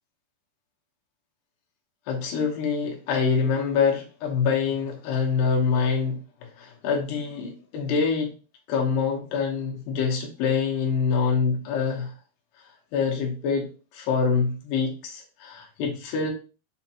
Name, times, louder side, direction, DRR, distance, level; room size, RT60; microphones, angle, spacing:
voice 1, 2.1-6.2 6.6-8.3 8.7-12.1 12.9-16.3, left 5 dB, 85° left, 3.0 m, -25 dB
6.7 x 2.3 x 2.8 m
omnidirectional pair, 4.7 m